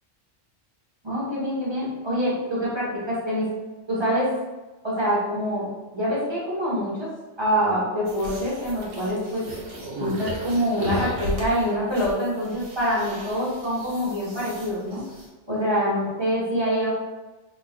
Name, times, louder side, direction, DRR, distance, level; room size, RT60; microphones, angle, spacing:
voice 1, 1.0-3.5 3.9-4.3 4.8-5.7 5.9-7.1 7.4-9.4 10.0-15.0 15.5-16.9, equal, 20° right, -8 dB, 1.2 m, -25 dB
sound 1, 8.1-15.3, equal, 60° right, 1.1 m, -35 dB
3.7 x 3.1 x 2.4 m, 1.2 s
omnidirectional pair, 1.3 m